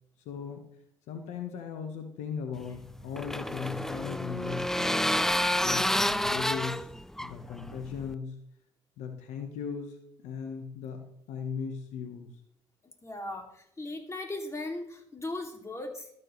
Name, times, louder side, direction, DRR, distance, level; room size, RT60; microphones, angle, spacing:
voice 1, 0.2-0.7 1.1-5.1 5.6-6.9 7.2-8.4 9.0-10.0 10.2-12.3, left 6 dB, 80° left, 5 dB, 1.0 m, -38 dB
sound 1, 2.6-8.1, left 1 dB, 5° left, 0.3 m, -29 dB
voice 2, 12.8-16.1, left 2 dB, 25° left, 2 dB, 2.5 m, -38 dB
13.0 x 7.5 x 3.1 m, 0.74 s
supercardioid pair, 65°, 12 cm